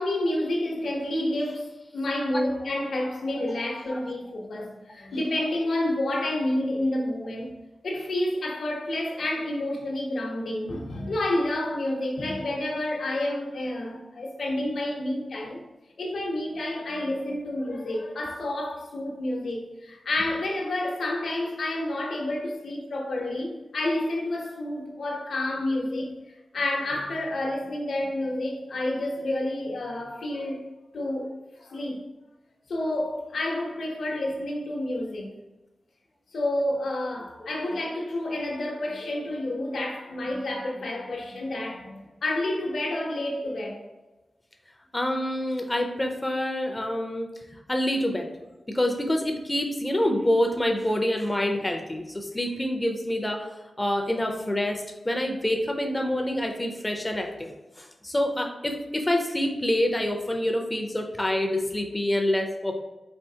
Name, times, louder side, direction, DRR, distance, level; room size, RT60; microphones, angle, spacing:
voice 1, 0.0-1.7 1.9-7.5 7.8-15.6 16.0-26.1 26.5-30.6 30.9-32.1 32.7-35.4 36.3-43.8, left 1 dB, 65° left, 0.8 m, -29 dB
voice 2, 44.9-47.3 47.7-48.3 48.7-53.5 53.8-57.5 57.8-62.8, left 1 dB, 15° left, 0.4 m, -27 dB
4.3 x 4.0 x 2.7 m
wide cardioid pair, 170°, 0 cm